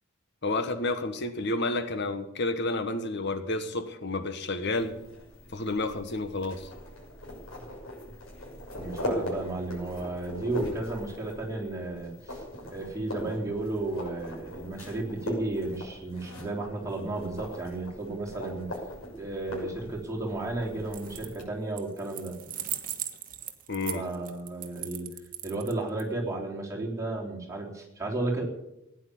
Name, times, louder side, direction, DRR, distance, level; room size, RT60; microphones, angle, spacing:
voice 1, 0.4-4.9 5.5-6.7 23.7-24.0, left 2 dB, 55° left, 9 dB, 1.3 m, -30 dB
sound 1, 4.7-21.5, equal, 80° left, 6.6 m, -40 dB
voice 2, 8.8-18.7 19.2-22.4 23.9-25.1 25.4-28.5, right 2 dB, 15° right, -2 dB, 3.5 m, -33 dB
sound 2, 20.9-21.4 21.8-26.0, right 11 dB, 40° right, 1.5 m, -38 dB
17.0 x 9.9 x 8.5 m, 0.89 s
head